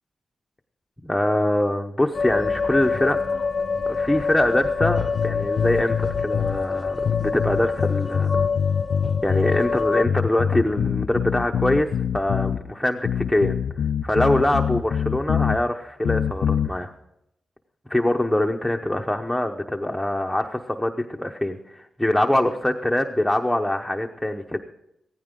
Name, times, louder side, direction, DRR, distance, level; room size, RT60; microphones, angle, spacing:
voice 1, 1.0-3.2 3.9-8.4 9.2-11.9 12.1-13.6 14.0-16.9 17.9-24.6, left 1 dB, 5° left, 2 dB, 0.9 m, -23 dB
sound 1, 2.1-10.1, left 4 dB, 40° left, 0.8 m, -26 dB
sound 2, 4.8-6.6 7.0-9.6 10.0-12.6 13.0-15.6 16.0-16.7, left 8 dB, 80° left, 0.4 m, -24 dB
17.0 x 15.0 x 3.8 m, 0.82 s
wide cardioid pair, 120°, 0 cm